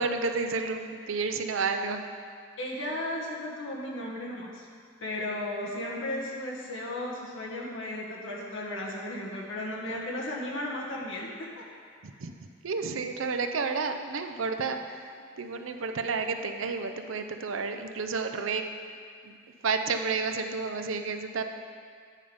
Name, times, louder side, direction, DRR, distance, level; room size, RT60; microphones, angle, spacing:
voice 1, 0.0-2.0 12.0-12.3 12.6-18.6 19.2-19.4 19.6-21.4, right 4 dB, 85° right, 7 dB, 0.6 m, -31 dB
voice 2, 2.6-4.6 5.0-11.5, left 1 dB, 70° left, -3 dB, 1.5 m, -35 dB
9.2 x 5.0 x 5.4 m, 2.2 s
head